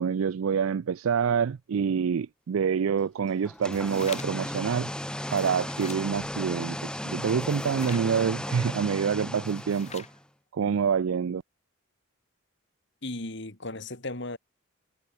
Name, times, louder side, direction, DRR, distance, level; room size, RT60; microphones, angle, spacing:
voice 1, 0.0-4.9 5.3-10.0 10.5-11.4, right 6 dB, 70° right, 0.4 m, -27 dB
sound 1, 3.4-10.2, equal, 5° left, 3.6 m, -35 dB
sound 2, 3.5-4.5 5.2-6.1 7.2-8.1 9.3-10.2, left 7 dB, 30° left, 4.3 m, -45 dB
voice 2, 13.0-14.4, left 2 dB, 55° left, 2.5 m, -36 dB
head